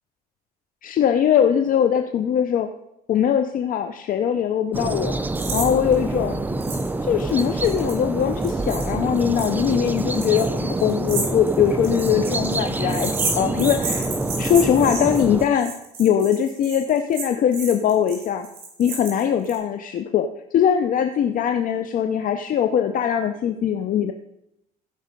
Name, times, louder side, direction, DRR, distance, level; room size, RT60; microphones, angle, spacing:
voice 1, 0.8-2.7 3.1-5.2 5.5-6.4 7.0-14.1 14.4-15.7 16.0-18.5 18.8-24.1, left 8 dB, 55° left, 7 dB, 0.6 m, -21 dB
sound 1, 4.7-15.5, right 2 dB, 10° right, 0.5 m, -26 dB
sound 2, 5.4-5.7 5.9-6.0 6.6-6.9 7.2-19.6, right 4 dB, 65° right, 4.7 m, -32 dB
15.5 x 5.4 x 5.3 m, 0.84 s
cardioid pair, 110°, 17 cm